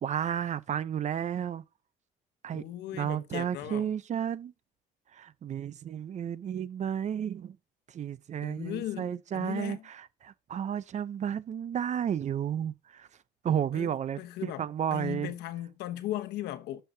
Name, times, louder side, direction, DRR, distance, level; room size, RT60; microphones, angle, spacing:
voice 1, 0.0-1.6 2.4-2.6 2.9-4.5 5.1-7.6 7.9-13.1 13.4-15.3, right 9 dB, 45° right, 0.7 m, -32 dB
voice 2, 2.5-3.9 8.4-9.9 13.7-16.8, left 13 dB, 80° left, 1.1 m, -37 dB
12.5 x 5.7 x 2.8 m
cardioid pair, 110°, 17 cm